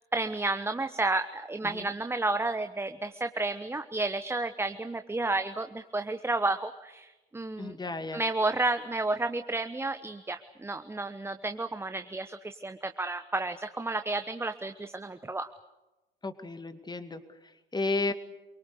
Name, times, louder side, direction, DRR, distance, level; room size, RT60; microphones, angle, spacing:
voice 1, 0.0-7.8 8.1-15.5, right 2 dB, 10° right, 9 dB, 1.0 m, -31 dB
voice 2, 7.6-8.2 16.2-18.1, left 3 dB, 15° left, 9 dB, 2.2 m, -33 dB
27.5 x 24.0 x 6.8 m, 1.1 s
figure-of-eight pair, 65°, 29 cm